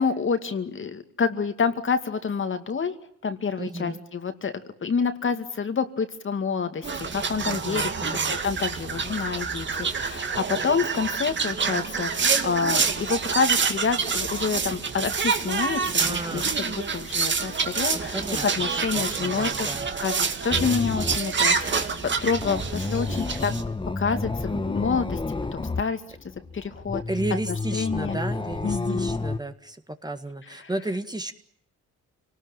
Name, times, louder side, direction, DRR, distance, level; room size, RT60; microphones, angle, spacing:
voice 1, 0.0-2.9 3.2-6.8 7.1-7.9 8.4-19.8 20.0-20.1 20.4-23.5 24.0-25.2 25.5-26.0 26.5-27.0 27.7-28.2 28.6-29.1, left 5 dB, 40° left, 8 dB, 2.3 m, -28 dB
voice 2, 3.6-4.0 7.5-8.3 16.0-16.5 17.9-18.5 18.8-19.9 27.1-29.8 30.0-31.3, right 2 dB, 15° right, 8 dB, 1.8 m, -33 dB
sound 1, 6.8-23.6, right 5 dB, 40° right, 2.3 m, -27 dB
sound 2, 20.5-25.8 26.1-29.4, left 3 dB, 15° left, 1.4 m, -31 dB
27.5 x 19.0 x 9.0 m, 0.67 s
cardioid pair, 90°, 30 cm